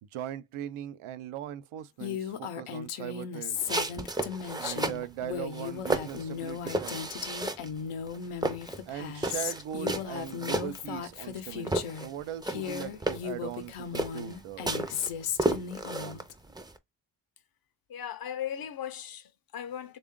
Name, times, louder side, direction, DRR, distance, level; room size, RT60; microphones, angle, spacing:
voice 1, 0.0-3.8 4.6-7.4 8.9-14.8 15.8-16.2, right 11 dB, 85° right, 0.6 m, -40 dB
Female speech woman speaking, 2.0-12.1 12.4-16.3, left 8 dB, 85° left, 0.7 m, -36 dB
sound 1, 3.6-5.1 5.5-7.8 8.1-11.4 11.6-16.8, right 2 dB, 10° right, 0.4 m, -33 dB
voice 2, 17.9-20.0, left 9 dB, 45° left, 0.5 m, -37 dB
3.6 x 2.4 x 3.6 m
cardioid pair, 90°, 49 cm